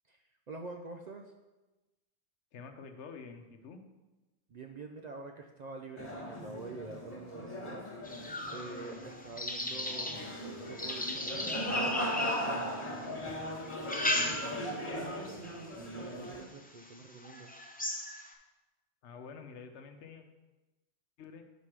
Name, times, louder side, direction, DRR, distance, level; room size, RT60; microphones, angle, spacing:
voice 1, 0.1-1.3 4.5-7.9 8.5-10.2 10.7-15.5 15.8-17.5, right 3 dB, 55° right, 3 dB, 0.5 m, -47 dB
voice 2, 2.5-3.8 19.0-20.2 21.2-21.4, left 5 dB, 85° left, 6 dB, 1.0 m, -48 dB
sound 1, 6.0-16.4, equal, 30° left, 1.3 m, -38 dB
sound 2, 8.1-13.1 13.7-14.8 15.3-15.6 16.2-16.3 16.8-16.9 17.2-18.3, left 1 dB, 10° left, 0.4 m, -36 dB
5.2 x 4.8 x 5.8 m, 1.1 s
omnidirectional pair, 1.1 m